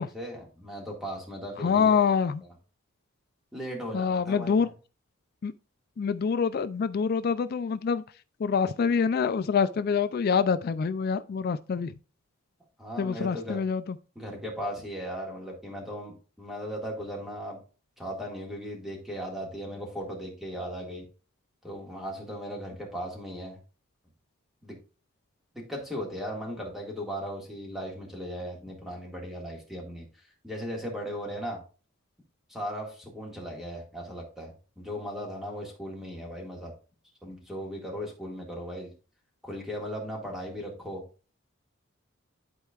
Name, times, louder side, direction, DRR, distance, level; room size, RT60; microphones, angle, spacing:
voice 1, 0.0-2.0 3.5-4.7 12.8-13.6 14.2-17.6 18.0-21.0 21.6-23.6 24.6-24.7 25.5-30.1 30.4-31.6 32.5-36.7 37.2-38.9 39.4-41.0, equal, ahead, 1.9 m, -37 dB
voice 2, 1.6-2.4 3.9-4.7 5.4-5.5 6.0-8.0 8.4-11.9 13.0-14.0, left 6 dB, 45° left, 0.3 m, -26 dB
11.5 x 4.5 x 2.4 m
head